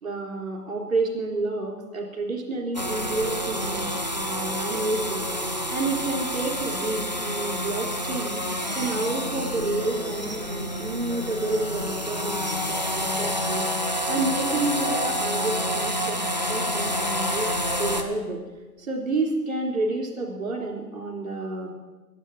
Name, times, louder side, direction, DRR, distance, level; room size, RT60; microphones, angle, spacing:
voice 1, 0.0-3.8 4.1-8.4 8.7-13.7 13.9-18.4 18.8-21.7, right 2 dB, 55° right, 1 dB, 3.6 m, -29 dB
sound 1, 2.7-18.0, equal, 30° right, 0.5 m, -28 dB
12.0 x 12.0 x 7.6 m, 1.2 s
hypercardioid pair, 175°, 48 cm